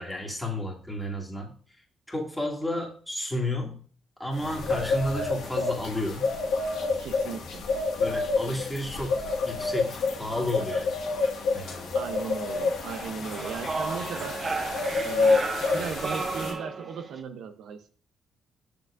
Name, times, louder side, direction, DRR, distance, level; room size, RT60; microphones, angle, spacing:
voice 1, 0.0-1.5 2.1-3.8 4.2-6.3 8.0-10.9 11.5-12.0, left 1 dB, 5° left, -2 dB, 2.1 m, -32 dB
sound 1, 4.4-16.5, left 3 dB, 85° left, 1.4 m, -28 dB
voice 2, 7.0-7.7 11.9-14.4 15.0-15.4 15.7-17.9, right 6 dB, 80° right, 8 dB, 0.6 m, -37 dB
sound 2, 12.2-17.2, right 4 dB, 30° right, 0.5 m, -34 dB
6.7 x 6.6 x 2.5 m, 0.43 s
cardioid pair, 90°, 0 cm